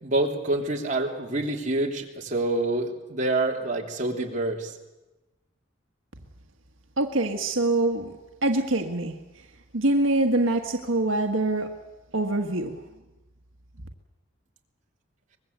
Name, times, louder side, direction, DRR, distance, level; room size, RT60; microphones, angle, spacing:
voice 1, 0.0-4.7, right 2 dB, 40° right, 1 dB, 3.1 m, -27 dB
voice 2, 7.0-8.1 8.4-9.1 9.7-11.7 12.1-12.8, right 2 dB, 85° right, 5 dB, 1.6 m, -24 dB
24.0 x 21.0 x 8.1 m, 1.0 s
head